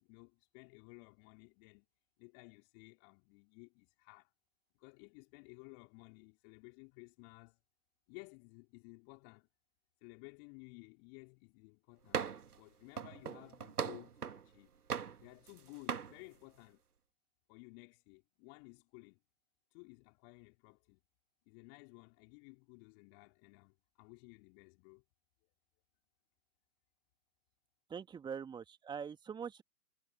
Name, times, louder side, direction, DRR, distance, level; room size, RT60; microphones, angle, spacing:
voice 1, 0.0-1.9 2.2-4.3 4.7-7.6 8.1-9.5 10.0-12.2 12.6-14.7 15.2-16.8 17.5-19.2 19.7-21.0 21.5-25.0, left 40 dB or more, 30° left, 4.1 m, -56 dB
sound 1, 12.1-12.6 13.0-14.5 14.9-15.6 15.9-16.1, right 6 dB, 75° right, 1.8 m, -39 dB
voice 2, 27.9-29.6, right 7 dB, 10° right, 2.0 m, -43 dB
figure-of-eight pair, 125°, 46 cm